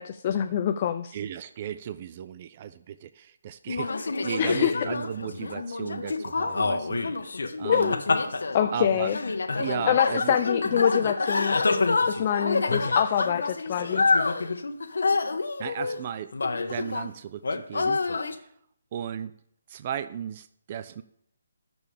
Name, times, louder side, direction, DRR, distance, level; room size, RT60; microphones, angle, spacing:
voice 1, 0.0-1.2 4.4-4.7 7.6-8.0 8.5-9.2 9.9-14.0, left 9 dB, 25° left, 8 dB, 0.5 m, -25 dB
voice 2, 1.1-7.0 7.6-7.9 8.7-9.1 9.6-10.4 15.6-16.3 16.7-18.0 18.9-19.3 19.7-21.0, right 9 dB, 30° right, 12 dB, 0.5 m, -35 dB
sound 1, 3.7-17.1 17.4-18.3, left 3 dB, 85° left, 1.3 m, -27 dB
20.0 x 6.9 x 3.5 m, 0.70 s
hypercardioid pair, 170°, 0 cm